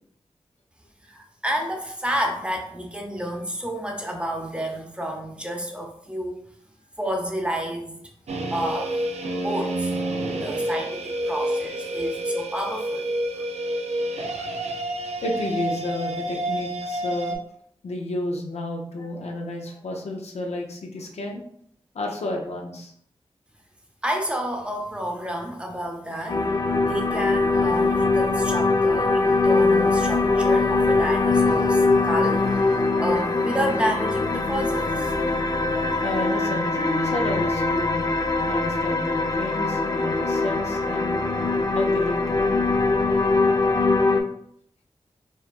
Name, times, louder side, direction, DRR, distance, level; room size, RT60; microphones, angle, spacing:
voice 1, 1.1-6.4 7.0-8.0 8.5-9.0 9.4-9.9 10.4-13.1 24.0-26.4 26.8-35.2, equal, 10° right, 1 dB, 0.7 m, -30 dB
sound 1, 8.3-17.4, right 1 dB, 80° right, 0.5 m, -28 dB
voice 2, 10.3-10.7 12.1-12.2 15.2-17.4 17.8-21.4 21.9-22.9 36.0-38.0 38.5-41.2 41.7-42.2, left 1 dB, 80° left, 0 dB, 0.6 m, -31 dB
sound 2, 26.3-44.2, left 3 dB, 35° left, 0.5 m, -22 dB
4.4 x 2.2 x 2.4 m, 0.67 s
cardioid pair, 45°, 11 cm